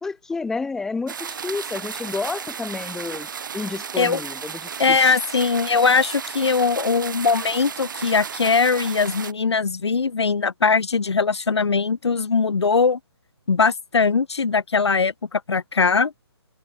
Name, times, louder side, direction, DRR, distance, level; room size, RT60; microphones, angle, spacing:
voice 1, 0.0-5.1, left 4 dB, 5° left, 1.4 m, -30 dB
sound 1, 1.1-9.3, right 7 dB, 45° right, 2.0 m, -34 dB
voice 2, 4.8-13.0 13.5-16.1, left 5 dB, 80° left, 2.1 m, -20 dB
hypercardioid pair, 165°, 14 cm